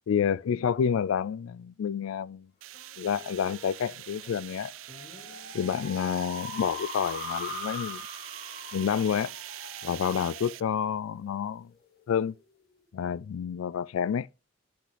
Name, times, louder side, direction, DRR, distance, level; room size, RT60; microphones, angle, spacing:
voice 1, 0.1-2.5 3.0-4.7 5.5-8.0 8.7-9.3 9.8-11.7 12.1-12.3 12.9-14.3, left 7 dB, 85° left, 0.3 m, -29 dB
sound 1, 2.6-10.6, right 15 dB, 75° right, 0.4 m, -43 dB
sound 2, 2.7-11.6, left 4 dB, 50° left, 1.7 m, -42 dB
8.3 x 6.0 x 3.4 m
head